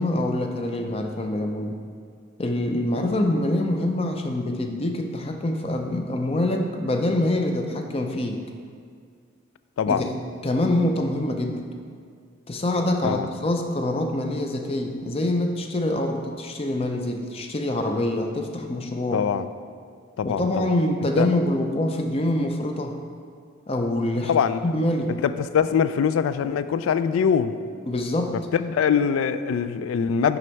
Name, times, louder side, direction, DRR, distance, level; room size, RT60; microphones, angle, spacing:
voice 1, 0.0-1.8 2.4-8.4 9.9-10.2 10.4-11.6 12.5-19.3 20.2-23.0 23.7-24.3 24.6-25.2 27.9-28.5, left 1 dB, 30° left, 4 dB, 0.5 m, -25 dB
voice 2, 9.8-10.1 13.0-13.3 19.1-19.5 20.2-20.7 21.2-21.3 24.3-24.6 25.2-27.6 28.3-30.4, left 7 dB, 85° left, 13 dB, 0.3 m, -23 dB
6.2 x 5.2 x 4.5 m, 2.1 s
head